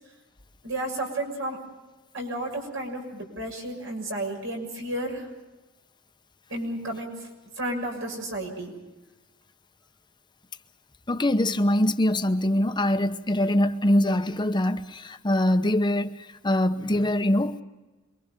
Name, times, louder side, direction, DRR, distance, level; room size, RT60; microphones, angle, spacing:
voice 1, 0.6-1.6 2.1-5.3 6.5-7.1 7.6-8.7, right 1 dB, 75° right, 6.7 m, -32 dB
voice 2, 11.1-16.1 16.4-17.6, left 1 dB, 20° left, 0.9 m, -23 dB
27.0 x 24.0 x 5.3 m
head